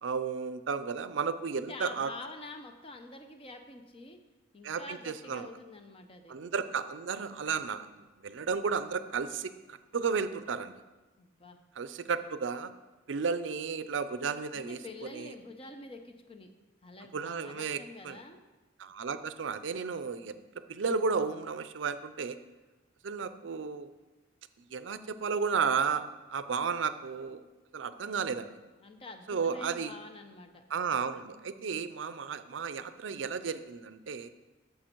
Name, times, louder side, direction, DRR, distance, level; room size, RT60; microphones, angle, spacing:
voice 1, 0.0-2.1 4.6-5.5 6.3-10.7 11.8-12.7 13.1-15.3 17.1-18.2 18.8-20.3 20.7-22.4 23.0-23.9 24.7-27.4 27.7-28.6 29.3-30.0 30.7-34.3, right 5 dB, 80° right, 12 dB, 0.5 m, -33 dB
voice 2, 1.6-4.2 4.5-6.4 11.2-11.6 14.5-16.5 16.8-18.4 28.8-30.6, left 2 dB, 30° left, 6 dB, 0.7 m, -47 dB
9.4 x 6.8 x 4.5 m, 1.2 s
head